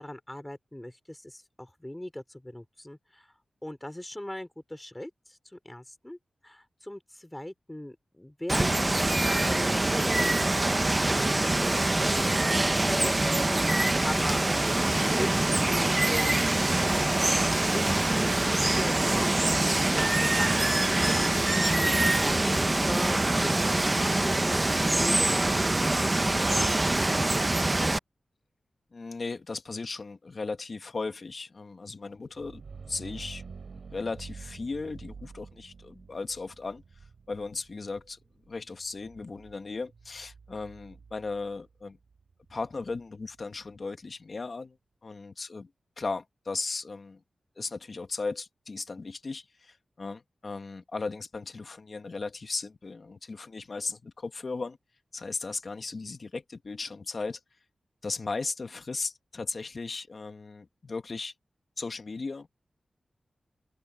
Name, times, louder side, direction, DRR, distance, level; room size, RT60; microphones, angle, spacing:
voice 1, 0.0-3.3 3.6-6.2 6.4-10.5 11.0-11.7 12.1-12.4 12.8-14.4 14.9-16.4 17.6-19.4 19.8-26.6, left 1 dB, 10° left, 4.8 m, -40 dB
Water, 8.5-28.0, right 2 dB, 25° right, 0.8 m, -24 dB
voice 2, 28.9-32.6 32.9-33.4 33.9-36.8 37.3-38.2 38.5-42.0 42.5-44.8 45.0-45.7 46.0-47.2 47.6-54.8 55.1-57.4 58.0-61.3 61.8-62.6, left 3 dB, 50° left, 1.3 m, -36 dB
sound 1, 32.2-43.8, right 5 dB, 70° right, 5.0 m, -49 dB
open air
wide cardioid pair, 95°, 0 cm